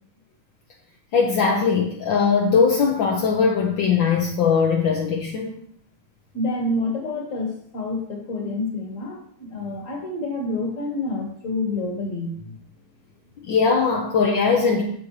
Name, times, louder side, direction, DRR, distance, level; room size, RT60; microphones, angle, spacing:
voice 1, 1.1-5.6 13.4-14.8, left 5 dB, 65° left, -1 dB, 1.6 m, -20 dB
voice 2, 6.3-12.6, left 2 dB, 40° left, 2 dB, 1.8 m, -28 dB
8.6 x 7.3 x 3.2 m, 0.64 s
omnidirectional pair, 2.3 m